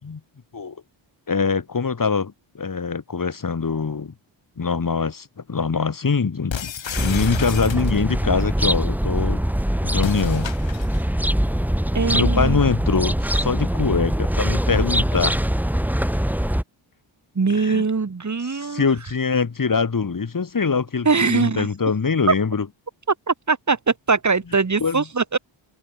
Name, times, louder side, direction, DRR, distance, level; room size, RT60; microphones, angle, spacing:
voice 1, 1.3-4.1 4.6-6.7 7.0-9.4 9.8-10.5 12.1-15.4 17.5-17.8 18.5-22.7 24.8-25.0, left 5 dB, 40° left, 5.5 m, -23 dB
sound 1, 6.5-8.2 9.9-11.1, left 8 dB, 70° left, 4.5 m, -32 dB
sound 2, 6.9-16.6, equal, 5° right, 4.2 m, -22 dB
voice 2, 11.9-12.6 17.4-18.9 21.1-21.7 22.3-22.4 23.1-25.4, right 4 dB, 35° right, 5.7 m, -21 dB
wide cardioid pair, 115°, 48 cm